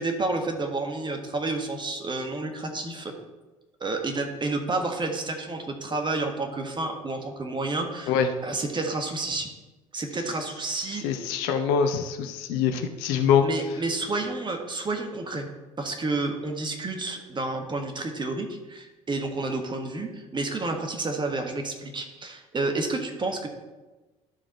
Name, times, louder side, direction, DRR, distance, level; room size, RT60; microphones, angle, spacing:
voice 1, 0.0-3.1 3.8-8.2 8.4-9.5 9.9-11.0 13.4-15.5 15.8-23.5, right 2 dB, 25° right, 4 dB, 1.5 m, -30 dB
voice 2, 11.0-13.5, left 7 dB, 60° left, 7 dB, 0.7 m, -24 dB
12.0 x 4.9 x 4.4 m, 1.2 s
figure-of-eight pair, 50°, 18 cm